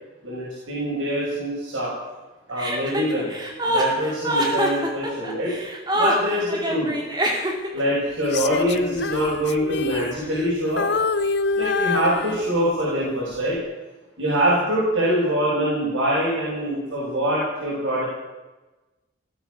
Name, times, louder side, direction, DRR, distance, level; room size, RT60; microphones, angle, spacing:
voice 1, 0.2-1.9 2.5-3.3 3.6-5.5 5.9-6.9 7.7-10.9 11.6-13.6 14.2-18.0, equal, 85° right, -7 dB, 6.0 m, -24 dB
Chuckle chortle, 2.6-7.8, equal, 20° right, 2.6 m, -24 dB
Female singing, 8.2-10.5 10.8-12.8 13.3-13.6, left 4 dB, 60° left, 0.7 m, -26 dB
17.0 x 13.0 x 6.3 m, 1.1 s
head